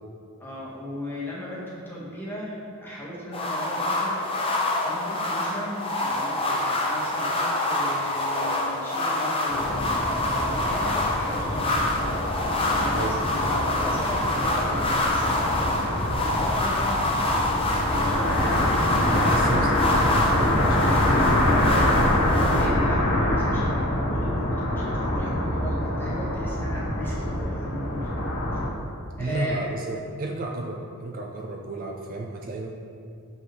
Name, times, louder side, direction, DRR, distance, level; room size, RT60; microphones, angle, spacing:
voice 1, 0.4-4.2 4.8-12.0 12.7-17.0 17.6-19.5 20.9-28.1 28.5-28.6 29.2-29.6, equal, 10° left, -6 dB, 1.3 m, -37 dB
sound 1, 3.3-22.7, left 2 dB, 25° left, 0.7 m, -26 dB
sound 2, 9.5-28.7, left 1 dB, 55° left, 1.0 m, -25 dB
voice 2, 19.1-21.1 29.2-32.7, right 2 dB, 40° right, 1 dB, 0.4 m, -32 dB
6.4 x 5.4 x 3.1 m, 2.5 s
head